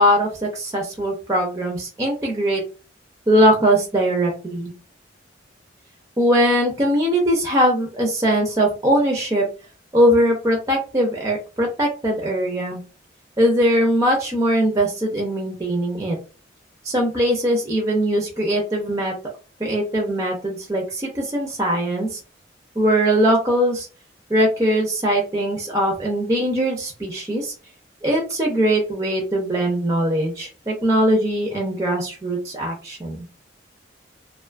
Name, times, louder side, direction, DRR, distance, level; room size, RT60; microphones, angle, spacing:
voice 1, 0.0-2.6 3.3-4.7 6.2-9.5 9.9-12.8 13.4-16.2 16.8-19.1 19.6-22.2 22.8-23.9 24.3-27.5 28.0-33.2, equal, 15° right, 1 dB, 0.5 m, -20 dB
2.4 x 2.2 x 2.4 m, 0.34 s
head